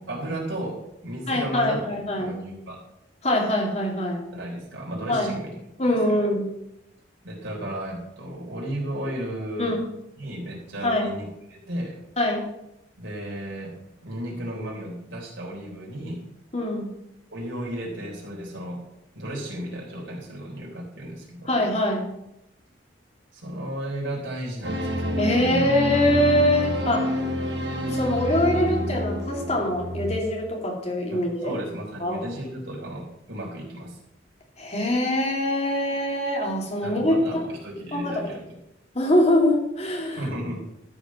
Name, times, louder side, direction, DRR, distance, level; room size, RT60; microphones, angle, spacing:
voice 1, 0.0-2.8 4.3-5.5 5.8-6.2 7.2-9.7 10.2-12.0 13.0-13.8 14.0-16.2 17.3-18.8 19.2-21.5 23.3-25.7 31.1-34.0 36.8-38.4 40.1-40.6, right 1 dB, 80° right, -3 dB, 3.7 m, -34 dB
voice 2, 1.3-2.4 3.2-4.2 5.1-5.4 5.8-6.5 9.6-9.9 10.8-11.1 12.2-12.5 16.5-16.9 21.5-22.1 25.2-27.2 27.9-31.6 32.0-32.2 34.6-37.4 37.9-38.2 38.9-40.3, left 1 dB, 35° left, -1 dB, 2.6 m, -23 dB
sound 1, 24.6-30.2, equal, 60° right, 1.3 m, -28 dB
13.0 x 5.2 x 6.1 m, 0.85 s
head